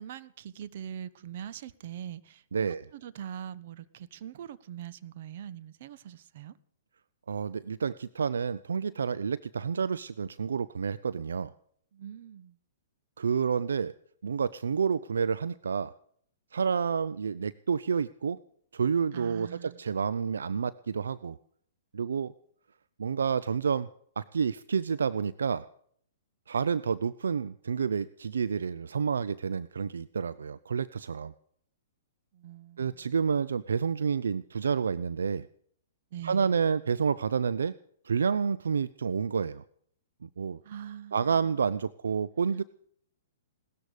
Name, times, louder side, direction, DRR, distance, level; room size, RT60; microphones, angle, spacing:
voice 1, 0.0-6.6 11.9-12.6 19.1-19.8 32.3-33.1 36.1-36.6 40.6-41.3, right 10 dB, 55° right, 15 dB, 1.0 m, -43 dB
voice 2, 2.5-2.8 7.3-11.5 13.2-13.9 14.2-15.9 16.5-18.4 18.7-21.4 21.9-22.3 23.0-23.9 24.2-25.7 26.5-31.3 32.8-35.5 36.2-37.7 38.0-39.6 40.2-40.6 41.1-42.6, right 6 dB, 80° right, 17 dB, 0.5 m, -29 dB
18.0 x 13.5 x 5.1 m, 0.62 s
hypercardioid pair, 125°, 0 cm